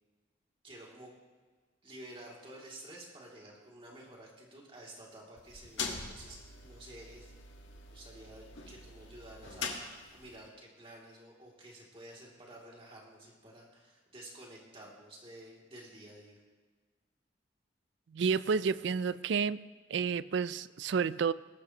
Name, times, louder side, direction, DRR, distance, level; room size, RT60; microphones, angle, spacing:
voice 1, 0.6-1.2 1.8-7.3 7.9-16.4, right 1 dB, 30° right, -3 dB, 2.7 m, -51 dB
sound 1, 5.4-10.5, left 4 dB, 75° left, 1.6 m, -43 dB
voice 2, 18.1-19.6 19.9-21.3, right 6 dB, 65° right, 17 dB, 0.4 m, -30 dB
20.5 x 12.0 x 3.0 m, 1.4 s
head